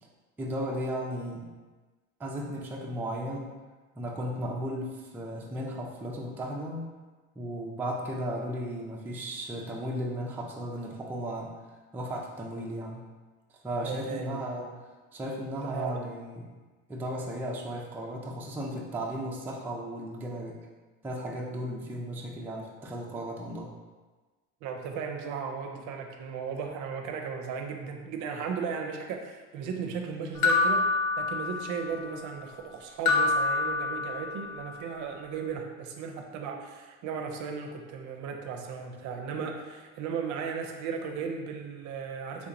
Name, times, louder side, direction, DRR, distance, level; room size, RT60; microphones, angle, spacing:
voice 1, 0.4-1.5 2.2-3.5 4.0-6.9 7.4-13.1 13.5-16.5 16.9-20.6 21.0-23.7, equal, 5° right, -2 dB, 0.3 m, -35 dB
voice 2, 13.8-14.7 15.6-16.0 24.6-42.5, right 6 dB, 55° right, 3 dB, 0.5 m, -36 dB
sound 1, 30.4-31.9 33.1-34.5, left 3 dB, 55° left, 0.6 m, -26 dB
3.5 x 2.8 x 2.5 m, 1.3 s
supercardioid pair, 95°, 35 cm